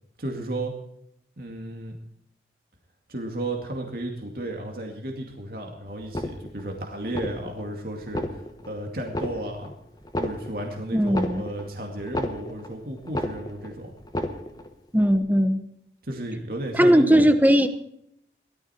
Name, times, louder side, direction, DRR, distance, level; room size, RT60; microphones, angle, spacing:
voice 1, 0.2-0.7 1.4-1.9 3.1-9.7 10.2-13.9 16.0-17.3, right 1 dB, 55° right, 1 dB, 2.3 m, -33 dB
sound 1, 6.0-6.7 7.1-7.7 8.0-8.7 9.1-9.7 10.0-12.7 13.0-13.7 14.0-14.7 15.0-15.2, left 1 dB, 20° left, 1.3 m, -32 dB
voice 2, 10.9-11.4 14.9-15.6 16.7-17.7, equal, 10° right, 9 dB, 1.0 m, -18 dB
18.0 x 13.0 x 4.4 m, 0.75 s
head